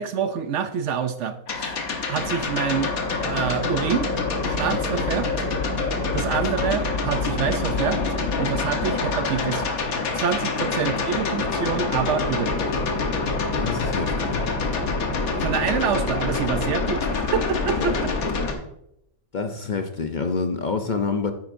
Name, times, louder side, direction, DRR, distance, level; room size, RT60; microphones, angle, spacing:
voice 1, 0.0-1.8 2.1-2.9 3.2-4.1 4.4-5.3 6.1-8.0 8.4-9.7 10.1-12.6 15.2-18.1, right 7 dB, 65° right, 10 dB, 0.8 m, -26 dB
sound 1, 1.5-18.5, left 3 dB, 75° left, 1.6 m, -26 dB
voice 2, 10.6-11.0 13.6-14.4 17.8-18.0 19.3-21.3, left 4 dB, 50° left, 6 dB, 0.6 m, -27 dB
9.5 x 9.3 x 2.6 m, 0.81 s
omnidirectional pair, 1.5 m